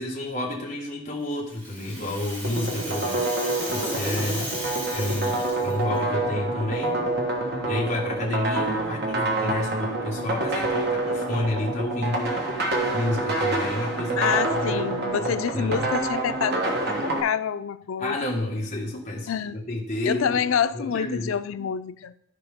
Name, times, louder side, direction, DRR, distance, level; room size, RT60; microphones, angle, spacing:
voice 1, 0.0-3.3 3.7-4.5 4.9-7.0 7.7-14.8 15.2-15.9 18.0-20.4 20.7-21.4, left 1 dB, 35° left, -4 dB, 1.6 m, -30 dB
Rattle (instrument), 1.2-6.0, equal, 40° right, 3.2 m, -35 dB
sound 1, 2.4-17.2, right 2 dB, 55° right, 1.2 m, -27 dB
voice 2, 14.2-16.7 17.0-18.2 19.3-19.6 20.1-22.1, left 7 dB, 85° left, 12 dB, 0.4 m, -27 dB
13.0 x 4.6 x 3.6 m, 0.71 s
head